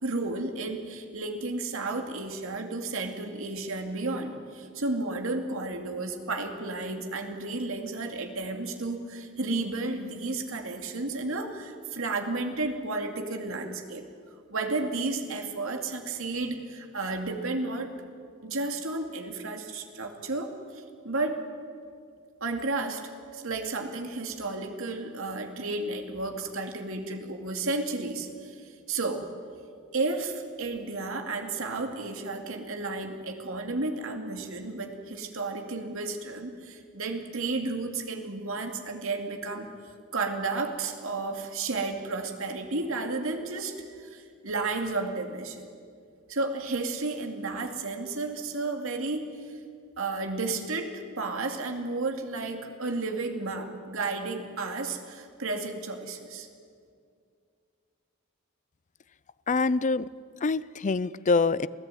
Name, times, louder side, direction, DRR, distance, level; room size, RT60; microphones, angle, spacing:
voice 1, 0.0-14.0 14.5-17.9 18.4-21.4 22.4-23.0 23.3-29.3 29.9-39.7 40.1-45.7 46.3-49.6 50.0-56.5, right 3 dB, 65° right, 4 dB, 2.5 m, -32 dB
voice 2, 59.5-60.1 60.4-61.7, left 4 dB, 35° left, 18 dB, 0.5 m, -25 dB
27.0 x 16.5 x 9.2 m, 2.3 s
head